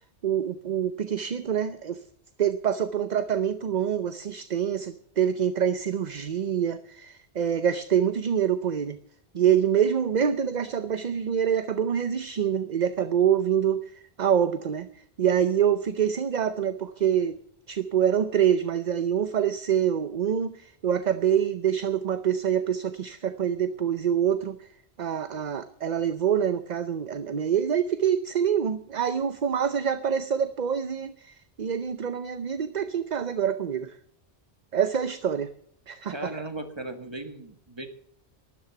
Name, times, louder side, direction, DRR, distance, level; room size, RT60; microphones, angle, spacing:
voice 1, 0.2-2.0 2.4-9.0 9.3-13.8 14.2-14.9 15.2-17.4 17.7-24.7 25.0-34.0 34.7-35.5 35.9-36.3, right 8 dB, 45° right, 12 dB, 0.7 m, -26 dB
voice 2, 36.1-37.9, right 2 dB, 25° right, 7 dB, 1.8 m, -37 dB
12.5 x 11.0 x 7.0 m, 0.65 s
omnidirectional pair, 1.1 m